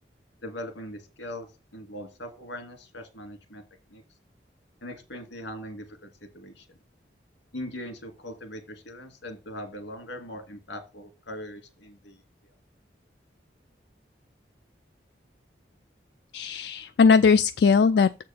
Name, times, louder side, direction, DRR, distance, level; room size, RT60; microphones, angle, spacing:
voice 1, 0.4-1.5 1.7-3.6 3.9-4.0 4.8-6.7 7.5-12.2, left 1 dB, 85° left, 2.1 m, -40 dB
voice 2, 16.3-18.2, left 5 dB, 65° left, 0.3 m, -20 dB
7.4 x 4.4 x 5.6 m
head